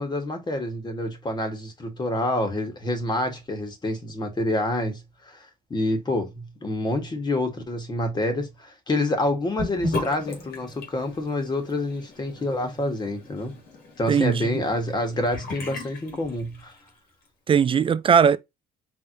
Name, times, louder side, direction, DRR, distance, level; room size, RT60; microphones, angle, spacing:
voice 1, 0.0-13.5 14.0-16.7, left 1 dB, 25° left, 1.4 m, -27 dB
Sink (filling or washing) / Bathtub (filling or washing), 9.6-16.9, left 2 dB, 65° left, 2.2 m, -36 dB
voice 2, 14.1-14.6 17.5-18.4, right 7 dB, 30° right, 0.4 m, -19 dB
4.6 x 3.4 x 2.6 m
cardioid pair, 110°, 17 cm